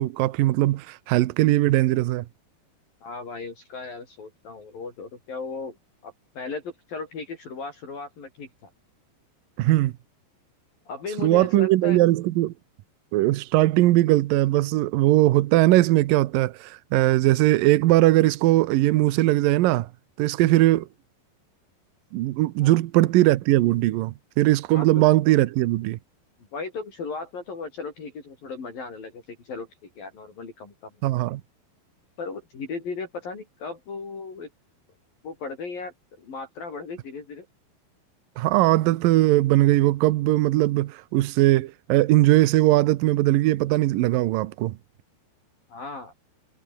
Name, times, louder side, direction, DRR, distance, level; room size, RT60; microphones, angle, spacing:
voice 1, 0.0-2.3 9.6-9.9 11.2-12.5 13.1-19.9 20.2-20.9 22.1-26.0 31.0-31.4 38.4-44.8, right 16 dB, 85° right, 1.9 m, -20 dB
voice 2, 3.0-5.8 6.0-8.7 10.9-12.0 22.6-22.8 24.7-24.9 26.5-30.9 32.2-34.5 35.2-37.5 45.7-46.1, left 4 dB, 50° left, 7.3 m, -36 dB
omnidirectional pair, 5.4 m